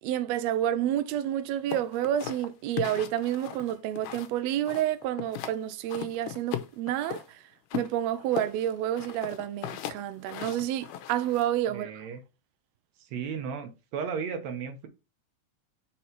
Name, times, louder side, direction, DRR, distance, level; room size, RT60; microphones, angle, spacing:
voice 1, 0.0-7.4 7.7-11.9, right 11 dB, 90° right, 1.5 m, -29 dB
sound 1, 1.7-4.4 4.7-5.6 5.9-7.3 7.7-11.5, left 12 dB, 85° left, 2.3 m, -37 dB
voice 2, 11.7-12.2 13.0-14.9, right 6 dB, 65° right, 2.1 m, -35 dB
5.5 x 4.3 x 4.4 m
omnidirectional pair, 3.6 m